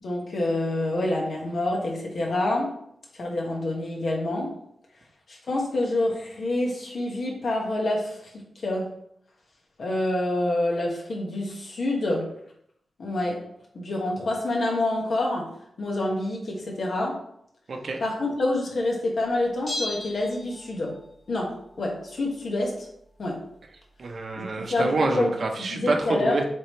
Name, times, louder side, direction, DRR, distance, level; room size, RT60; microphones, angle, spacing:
voice 1, 0.0-2.8 3.1-4.6 5.3-8.9 9.8-12.3 13.0-13.4 13.7-15.5 15.8-17.2 18.0-21.0 21.3-22.9 23.2-23.4 24.4-25.3 25.7-26.4, left 2 dB, 65° left, -1 dB, 1.7 m, -27 dB
voice 2, 17.7-18.0 24.0-26.5, right 2 dB, 60° right, 3 dB, 0.9 m, -27 dB
Bell, 19.7-21.1 21.3-21.4, left 2 dB, 30° left, 1.8 m, -35 dB
7.6 x 3.9 x 3.2 m, 0.71 s
wide cardioid pair, 100°, 0 cm